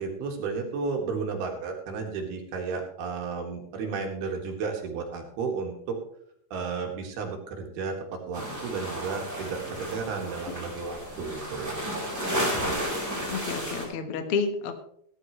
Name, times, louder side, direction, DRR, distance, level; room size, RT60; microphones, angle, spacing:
voice 1, 0.0-6.0 6.5-11.8, right 5 dB, 70° right, 2 dB, 3.7 m, -33 dB
sound 1, 8.3-13.8, equal, 5° right, 3.9 m, -32 dB
voice 2, 13.3-14.7, left 5 dB, 85° left, 7 dB, 1.2 m, -30 dB
17.5 x 12.0 x 3.1 m, 0.66 s
omnidirectional pair, 4.7 m